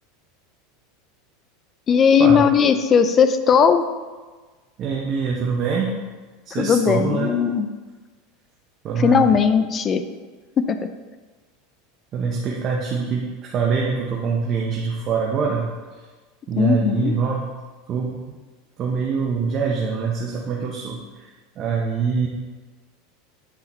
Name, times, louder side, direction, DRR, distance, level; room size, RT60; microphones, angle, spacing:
voice 1, 1.9-3.8 6.5-7.7 9.0-10.0 10.6-10.8 16.6-17.1, left 6 dB, 25° left, 10 dB, 0.3 m, -17 dB
voice 2, 4.8-5.9 6.5-7.3 8.8-9.2 12.1-15.7 16.5-17.4 17.9-18.1 18.8-21.0 21.6-22.3, right 5 dB, 35° right, -2 dB, 0.8 m, -24 dB
8.4 x 3.9 x 4.3 m, 1.3 s
supercardioid pair, 145°, 0 cm